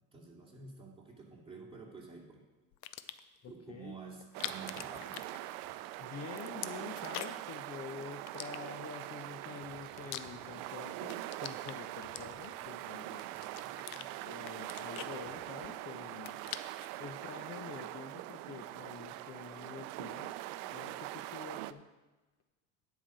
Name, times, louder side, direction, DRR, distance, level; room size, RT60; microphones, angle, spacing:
voice 1, 0.1-2.4 3.5-5.2 13.4-14.1, right 4 dB, 10° right, -3 dB, 2.7 m, -50 dB
sound 1, 2.7-3.4 4.2-5.9 6.1-7.5 8.3-9.1 9.6-10.7 11.0-12.7 13.2-14.1 14.4-15.7 16.0-16.9, left 14 dB, 80° left, 0.7 m, -44 dB
voice 2, 3.4-4.0 6.0-13.3 14.2-16.4 17.0-21.9, left 6 dB, 35° left, 5 dB, 0.8 m, -47 dB
sound 2, 4.3-21.7, right 16 dB, 70° right, 0.5 m, -43 dB
9.9 x 5.2 x 7.7 m, 1.2 s
supercardioid pair, 105°, 43 cm